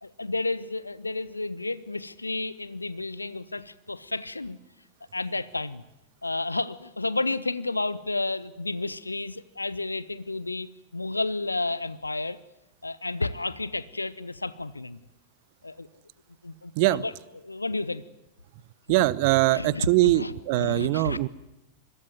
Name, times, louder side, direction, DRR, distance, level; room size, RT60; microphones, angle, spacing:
voice 1, 0.0-4.6 5.1-5.8 6.2-12.4 12.8-15.0 15.6-15.9 16.4-18.0 19.5-21.2, left 2 dB, 80° left, 18 dB, 0.9 m, -31 dB
voice 2, 18.9-21.3, right 19 dB, 45° right, 21 dB, 0.9 m, -22 dB
26.5 x 22.0 x 9.4 m, 0.94 s
figure-of-eight pair, 90°, 0 cm